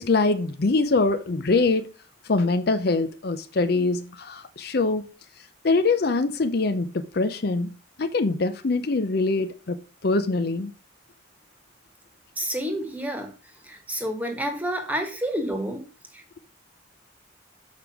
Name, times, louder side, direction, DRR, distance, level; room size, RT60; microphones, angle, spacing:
voice 1, 0.0-1.8 2.2-5.1 5.6-7.7 8.0-10.7, left 3 dB, 50° left, 0.6 m, -23 dB
voice 2, 12.4-13.3 13.6-15.8 16.1-16.4, equal, 10° right, 1.4 m, -29 dB
6.6 x 5.1 x 6.0 m
head